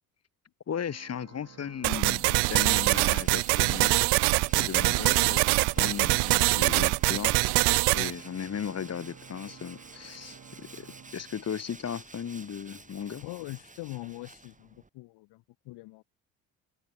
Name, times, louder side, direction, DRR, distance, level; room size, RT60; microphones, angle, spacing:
voice 1, 0.7-4.0 4.5-7.4 7.9-10.9 11.1-13.2, left 8 dB, 40° left, 1.4 m, -36 dB
Organ, 0.8-11.9, right 7 dB, 40° right, 2.6 m, -52 dB
sound 1, 1.8-8.1, right 24 dB, 70° right, 0.7 m, -24 dB
Tools, 2.4-14.9, right 3 dB, 20° right, 2.2 m, -50 dB
voice 2, 13.2-16.0, left 20 dB, 75° left, 1.7 m, -42 dB
hypercardioid pair, 60°, 41 cm